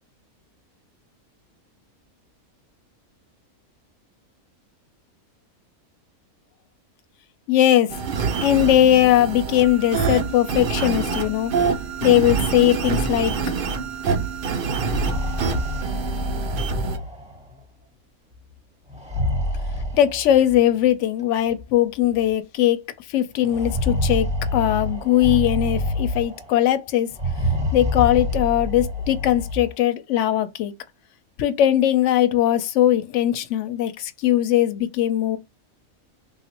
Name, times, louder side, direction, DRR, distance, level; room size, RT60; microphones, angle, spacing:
voice 1, 7.5-8.0 8.4-11.5 12.0-13.3 19.9-22.8 23.1-27.1 27.7-30.7 31.4-35.4, left 12 dB, 65° left, 0.8 m, -20 dB
sound 1, 7.9-17.0, right 5 dB, 85° right, 0.4 m, -26 dB
sound 2, 14.8-17.5 18.9-20.6 21.6-21.7 22.0-22.1 23.4-26.5 27.1-29.7, left 1 dB, 5° right, 0.7 m, -27 dB
3.4 x 2.4 x 2.8 m
omnidirectional pair, 1.5 m